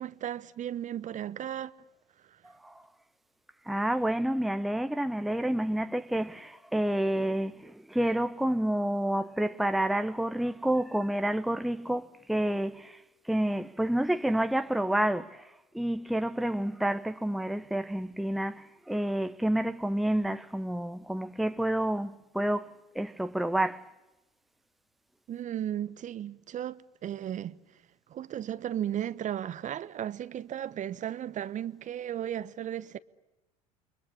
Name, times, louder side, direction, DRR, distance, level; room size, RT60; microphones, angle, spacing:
voice 1, 0.0-1.7 2.3-2.4 25.3-27.6 28.1-33.0, right 10 dB, 40° right, 1.1 m, -35 dB
voice 2, 3.7-13.0 13.3-15.5 15.7-22.7 22.9-23.8, right 1 dB, ahead, 0.9 m, -29 dB
29.5 x 23.5 x 8.4 m
hypercardioid pair, 70°, 20 cm